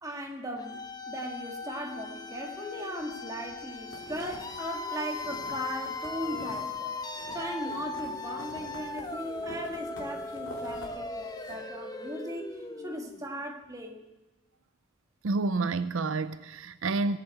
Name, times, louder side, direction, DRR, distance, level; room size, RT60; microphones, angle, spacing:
voice 1, 0.0-7.0 7.3-14.1, equal, 15° right, 1.8 m, -38 dB
sound 1, 0.6-13.4, left 3 dB, 20° left, 1.0 m, -38 dB
sound 2, 2.9-3.5 3.8-6.7 7.0-10.9 11.2-11.6, left 1 dB, 60° left, 3.5 m, -47 dB
voice 2, 15.2-17.2, right 3 dB, 75° right, 0.6 m, -29 dB
18.5 x 8.2 x 8.1 m
head